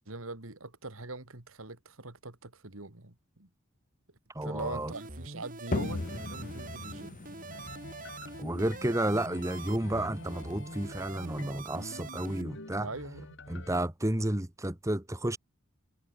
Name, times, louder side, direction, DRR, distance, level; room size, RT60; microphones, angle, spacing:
voice 1, 0.0-3.5 4.4-7.2 12.8-13.4, right 2 dB, 75° right, 2.7 m, -42 dB
voice 2, 4.3-4.9 8.4-12.9 13.5-15.4, right 1 dB, 15° right, 1.3 m, -31 dB
sound 1, 4.6-12.4, right 3 dB, 40° right, 2.7 m, -45 dB
sound 2, 5.7-11.2, left 2 dB, 40° left, 0.8 m, -39 dB
sound 3, 7.5-13.8, left 2 dB, 60° left, 3.6 m, -47 dB
head